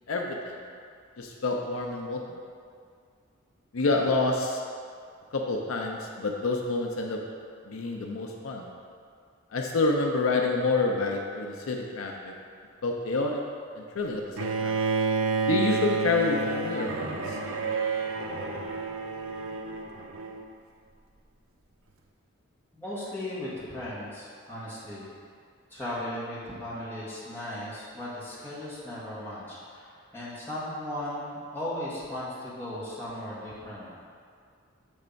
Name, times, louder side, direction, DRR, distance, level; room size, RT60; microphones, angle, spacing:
voice 1, 0.1-0.6 1.2-2.2 3.7-4.6 5.3-7.2 7.7-8.7 9.5-12.3 12.8-13.4 13.8-14.8 15.5-17.1, left 3 dB, 75° left, 1 dB, 0.6 m, -28 dB
Bowed string instrument, 14.4-20.4, right 4 dB, 70° right, 0.6 m, -29 dB
voice 2, 22.7-25.1 25.7-34.0, left 1 dB, 10° left, -10 dB, 1.5 m, -37 dB
7.1 x 3.3 x 5.2 m, 2.2 s
head